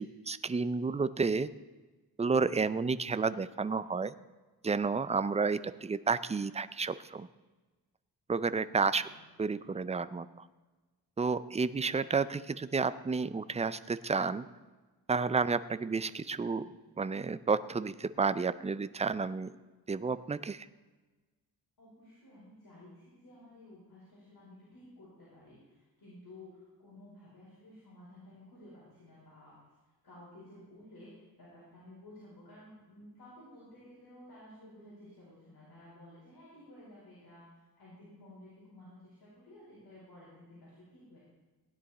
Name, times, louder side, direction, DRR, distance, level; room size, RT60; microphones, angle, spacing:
voice 1, 0.0-1.5 2.2-4.1 4.6-7.3 8.3-9.1 9.4-10.5 11.2-14.5 15.1-19.5 19.9-20.7, right 4 dB, 20° right, 14 dB, 0.4 m, -31 dB
voice 2, 8.8-9.2 21.8-29.6 30.0-41.2, left 1 dB, 70° left, -8 dB, 4.7 m, -54 dB
16.5 x 10.0 x 4.2 m, 1.2 s
wide cardioid pair, 115°, 39 cm